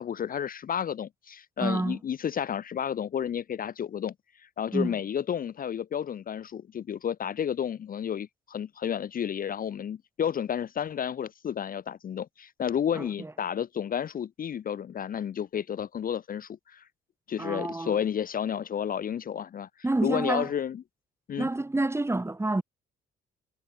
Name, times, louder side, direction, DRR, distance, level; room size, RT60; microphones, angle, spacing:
voice 1, 0.0-16.9 17.3-19.7 20.0-20.8 21.3-21.5, left 8 dB, 45° left, 0.7 m, -31 dB
voice 2, 1.6-2.0 4.7-5.0 12.9-13.3 17.4-18.0 19.8-20.5 21.4-22.6, right 2 dB, 15° right, 1.6 m, -28 dB
cardioid pair, 90°, 20 cm